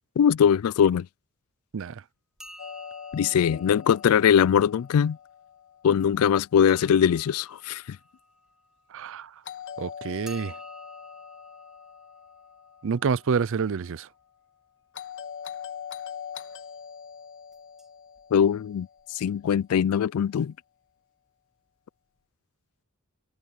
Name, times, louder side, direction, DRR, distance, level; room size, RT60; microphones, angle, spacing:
voice 1, 0.2-1.1 3.1-5.2 5.8-8.0 18.3-18.9 19.1-20.5, left 8 dB, 85° left, 0.3 m, -21 dB
sound 1, 2.4-5.1 6.7-9.4 10.3-14.1 17.5-17.9 18.2-18.3 19.0-19.1 19.3-19.4, equal, ahead, 3.2 m, -52 dB
Doorbell, 2.6-6.6 9.4-13.7 14.9-19.4, left 8 dB, 60° left, 1.6 m, -43 dB
voice 2, 8.9-9.3 9.8-10.5 12.8-14.1, right 5 dB, 65° right, 0.5 m, -28 dB
head